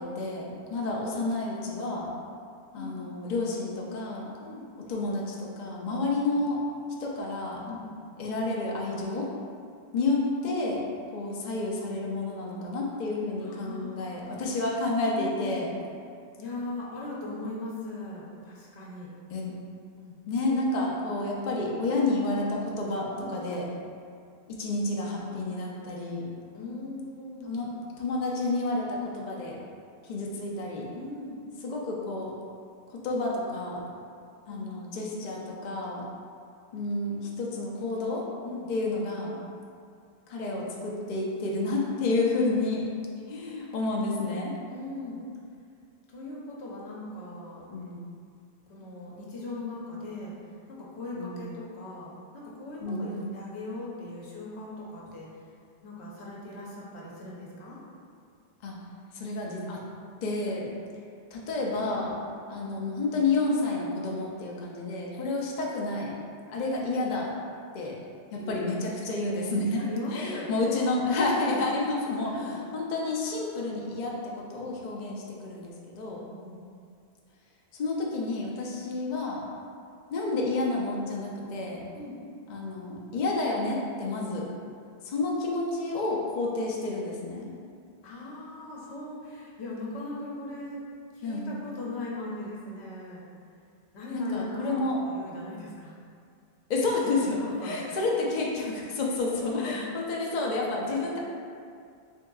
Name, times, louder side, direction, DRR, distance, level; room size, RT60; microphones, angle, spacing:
voice 1, 0.0-2.1 2.7-4.3 4.9-6.6 7.0-7.6 8.2-9.3 9.9-10.8 11.1-15.8 19.3-19.5 20.3-23.7 24.6-26.3 27.4-29.6 30.0-30.9 31.6-32.3 32.9-33.8 34.5-36.0 36.7-38.3 38.7-39.4 40.3-42.8 43.3-44.5 47.7-48.0 51.1-51.5 52.8-53.3 58.6-58.8 59.1-59.8 60.2-60.7 61.3-62.2 62.5-66.1 66.5-67.3 67.7-68.0 68.3-76.2 77.7-79.4 80.1-81.9 82.5-84.5 85.0-87.5 91.2-91.5 94.1-95.1 96.7-101.2, left 2 dB, 55° left, -3 dB, 0.5 m, -30 dB
voice 2, 13.4-14.4 15.1-15.6 16.4-19.1 19.9-20.2 23.2-23.4 26.5-27.5 30.9-31.4 34.5-34.7 38.4-38.7 44.7-45.2 46.1-47.6 48.7-50.3 50.7-55.3 55.8-57.8 61.7-62.0 68.4-68.6 69.8-71.6 72.2-72.6 76.1-76.6 81.9-82.2 88.0-90.8 91.1-93.3 93.9-96.0 97.4-98.3 99.2-99.8, left 2 dB, 75° left, -5 dB, 1.0 m, -39 dB
3.6 x 3.6 x 2.3 m, 2.3 s
omnidirectional pair, 1.1 m